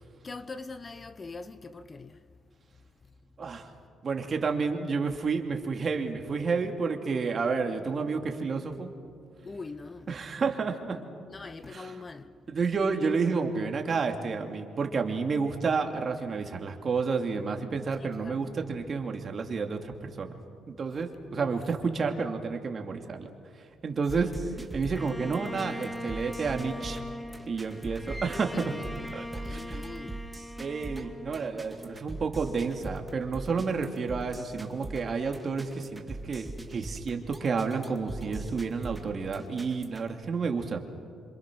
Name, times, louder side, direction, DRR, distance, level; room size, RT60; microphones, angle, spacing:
voice 1, 0.2-2.2 9.4-10.1 11.2-12.3 18.0-18.5 21.3-21.5 24.2-24.3 28.3-30.2, left 3 dB, 30° left, 1.0 m, -42 dB
voice 2, 3.4-3.7 4.0-8.9 10.1-11.0 11.7-11.9 12.5-20.4 20.7-23.3 23.8-24.3 24.7-27.0 27.5-28.9 29.1-29.8 30.6-40.8, right 4 dB, 45° right, 2.7 m, -30 dB
sound 1, 24.1-40.1, right 2 dB, 15° right, 2.3 m, -41 dB
Bowed string instrument, 24.9-32.2, left 1 dB, 5° left, 1.0 m, -41 dB
27.0 x 26.5 x 6.3 m
cardioid pair, 90°, 0 cm